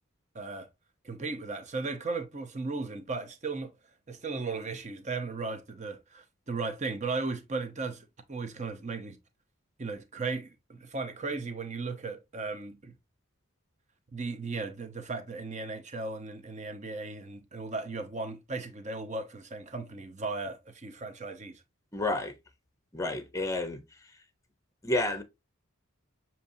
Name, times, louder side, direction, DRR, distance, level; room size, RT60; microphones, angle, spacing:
voice 1, 0.3-0.7 1.0-3.7 4.1-9.2 9.8-12.9 14.1-21.6, right 3 dB, 35° right, 0.8 m, -36 dB
voice 2, 21.9-22.3 22.9-23.8 24.8-25.2, left 2 dB, 15° left, 0.7 m, -30 dB
6.9 x 2.9 x 2.7 m
head